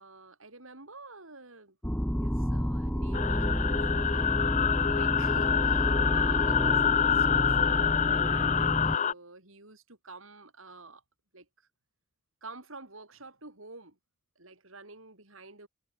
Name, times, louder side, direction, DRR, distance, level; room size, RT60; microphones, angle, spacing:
voice 1, 0.0-1.8 2.1-4.4 4.9-6.8 7.1-11.0 11.3-11.7 12.4-14.0 14.4-15.7, right 3 dB, 75° right, 6.6 m, -49 dB
sound 1, 1.8-9.0, equal, 5° left, 1.6 m, -30 dB
sound 2, 3.1-9.1, left 8 dB, 35° left, 0.5 m, -27 dB
head